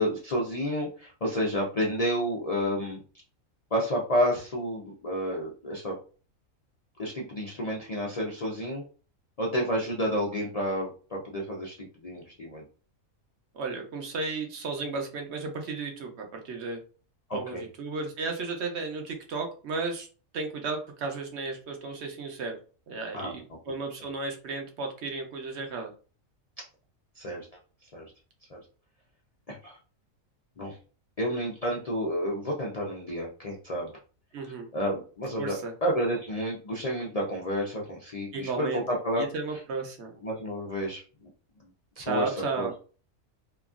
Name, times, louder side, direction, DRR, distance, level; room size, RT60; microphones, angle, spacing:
voice 1, 0.0-3.0 3.7-6.0 7.0-8.8 9.4-12.6 17.3-17.6 23.1-23.3 27.2-27.5 27.9-28.0 28.5-28.6 29.5-29.8 30.6-30.8 31.2-33.9 34.4-39.2 40.2-41.0 42.0-42.8, equal, 65° left, -3 dB, 0.3 m, -30 dB
voice 2, 13.5-16.8 17.3-20.1 20.3-22.6 22.9-25.9 34.3-34.7 35.4-35.7 38.3-38.8 39.2-40.1 42.0-42.7, right 4 dB, 60° right, 3 dB, 0.9 m, -34 dB
2.9 x 2.4 x 2.4 m, 0.37 s
omnidirectional pair, 1.4 m